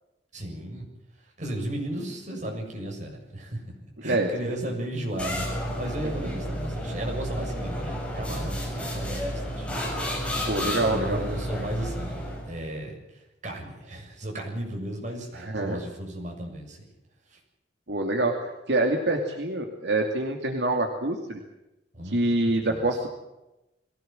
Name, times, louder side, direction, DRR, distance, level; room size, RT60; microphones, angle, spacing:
voice 1, 0.3-0.9 1.2-3.6 4.0-9.8 10.6-16.8 17.3-17.4 21.9-22.8, right 1 dB, 45° right, 1 dB, 7.2 m, -35 dB
sound 1, 5.2-12.6, equal, 5° left, 6.7 m, -31 dB
voice 2, 10.4-11.3 15.3-15.8 17.9-21.4 22.0-23.1, right 2 dB, 75° right, 3 dB, 2.5 m, -26 dB
22.0 x 17.5 x 7.7 m, 0.95 s
head